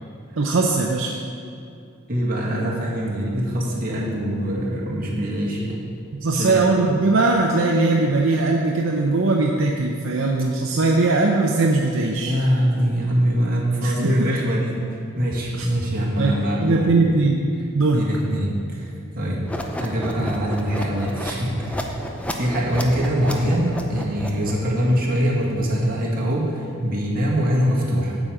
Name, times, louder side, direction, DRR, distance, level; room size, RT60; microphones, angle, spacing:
voice 1, 0.4-1.1 6.2-12.3 13.8-14.3 15.6-15.7 16.2-17.4 17.7-18.1, right 3 dB, 70° right, 0 dB, 0.6 m, -20 dB
voice 2, 2.1-5.8 6.3-6.7 12.2-16.9 17.9-19.5 19.8-28.2, equal, 45° right, -4 dB, 1.9 m, -23 dB
sound 1, 19.5-24.7, left 1 dB, 5° left, 0.5 m, -32 dB
8.8 x 5.1 x 7.6 m, 2.4 s
head